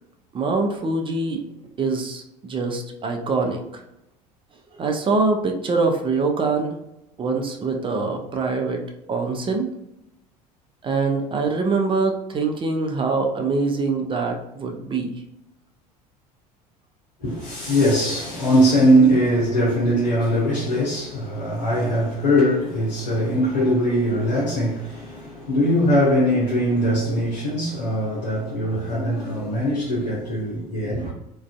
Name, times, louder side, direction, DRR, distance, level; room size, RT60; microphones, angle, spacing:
voice 1, 0.3-1.4 1.8-3.8 4.7-6.8 7.2-8.8 9.1-9.7 10.8-15.2, right 3 dB, 25° right, 0.4 m, -24 dB
voice 2, 17.2-31.1, equal, 85° left, 0.7 m, -21 dB
2.4 x 2.3 x 2.2 m
figure-of-eight pair, 65°, 21 cm